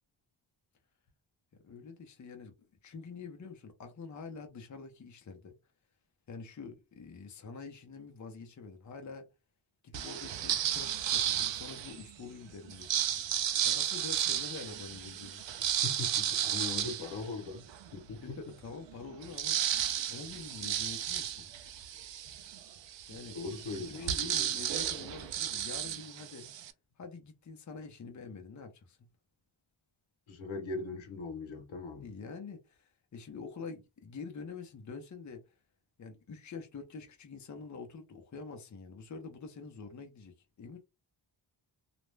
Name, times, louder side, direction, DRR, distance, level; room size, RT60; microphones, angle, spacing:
voice 1, 1.6-2.5 2.8-5.5 6.3-9.2 9.8-13.1 13.6-15.4 16.8-17.0 18.2-19.6 20.1-21.5 23.1-23.4 23.7-26.5 27.0-29.0 32.0-35.4 36.0-40.8, left 4 dB, 40° left, 0.6 m, -46 dB
sound 1, 9.9-12.1 12.7-17.9 18.4-18.5 18.7-26.7, right 10 dB, 70° right, 0.5 m, -33 dB
voice 2, 15.8-17.6 17.9-18.4 23.3-24.5 30.3-32.1, left 3 dB, 80° left, 0.9 m, -40 dB
2.5 x 2.1 x 3.1 m
wide cardioid pair, 140°, 46 cm